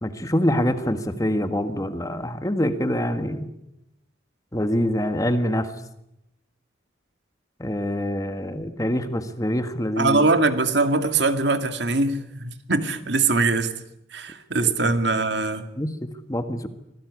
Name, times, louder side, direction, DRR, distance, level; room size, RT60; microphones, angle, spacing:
voice 1, 0.0-3.5 4.5-5.7 7.6-10.3 14.6-14.9 15.8-16.7, equal, 20° left, 8 dB, 1.7 m, -25 dB
voice 2, 10.0-13.7 14.1-15.6, right 3 dB, 65° right, 8 dB, 2.2 m, -22 dB
26.0 x 18.5 x 9.8 m, 0.85 s
head